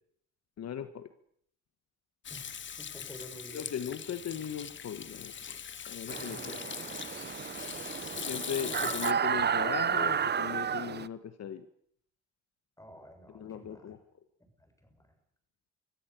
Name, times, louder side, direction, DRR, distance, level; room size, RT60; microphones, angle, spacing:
voice 1, 0.6-1.1 3.5-5.3 5.9-6.6 8.3-11.7 13.3-14.0, left 8 dB, 60° left, 10 dB, 1.5 m, -38 dB
Hands / Sink (filling or washing), 2.2-9.1, left 8 dB, 40° left, 0.9 m, -41 dB
voice 2, 2.3-3.9 6.1-6.8 8.6-9.0 12.8-14.0 14.4-15.1, equal, 10° left, 5 dB, 7.5 m, -51 dB
sound 1, 6.1-11.1, right 7 dB, 35° right, 0.8 m, -32 dB
25.5 x 15.5 x 8.4 m, 0.66 s
cardioid pair, 90°, 30 cm